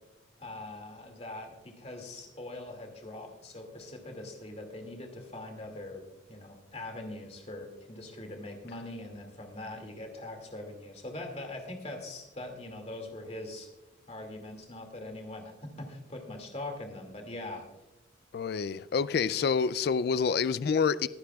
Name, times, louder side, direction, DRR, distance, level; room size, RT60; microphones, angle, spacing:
voice 1, 0.4-13.7 14.1-17.6, left 2 dB, 35° left, 2.2 m, -42 dB
voice 2, 18.3-21.1, left 6 dB, 55° left, 0.3 m, -27 dB
22.0 x 10.0 x 2.3 m
head